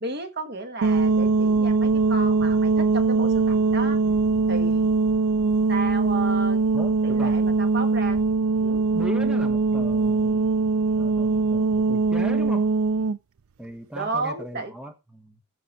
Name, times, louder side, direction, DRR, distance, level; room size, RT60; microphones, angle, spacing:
voice 1, 0.0-4.0 4.5-5.0 5.7-6.6 7.0-8.2 8.6-8.8 13.9-14.7, right 3 dB, 50° right, 1.4 m, -33 dB
sound 1, 0.8-13.2, right 4 dB, 80° right, 0.5 m, -21 dB
voice 2, 6.7-7.4 8.9-10.5 11.0-12.7 13.6-15.4, equal, 5° right, 1.2 m, -37 dB
14.0 x 5.2 x 4.1 m
head